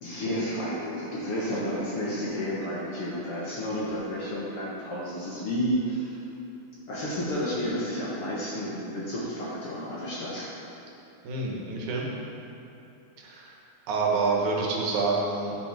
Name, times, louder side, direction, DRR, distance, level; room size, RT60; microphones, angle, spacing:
voice 1, 0.0-6.2 6.9-10.5, equal, 55° left, -6 dB, 1.8 m, -31 dB
voice 2, 11.2-12.1 13.2-13.5 13.9-15.6, right 3 dB, 75° right, -2 dB, 2.5 m, -27 dB
11.0 x 6.1 x 5.1 m, 2.8 s
omnidirectional pair, 3.6 m